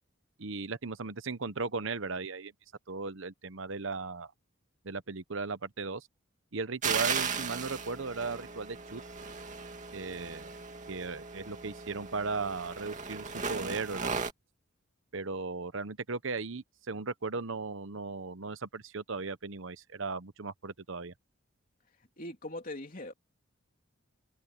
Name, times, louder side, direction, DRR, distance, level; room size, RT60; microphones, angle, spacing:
voice 1, 0.4-2.5 2.9-4.3 4.8-6.1 6.5-9.0 9.9-10.6 10.9-14.1 15.1-21.1, right 4 dB, 65° right, 1.0 m, -37 dB
sound 1, 6.8-14.3, right 5 dB, 35° right, 2.4 m, -36 dB
voice 2, 22.2-23.1, left 1 dB, 40° left, 3.2 m, -40 dB
head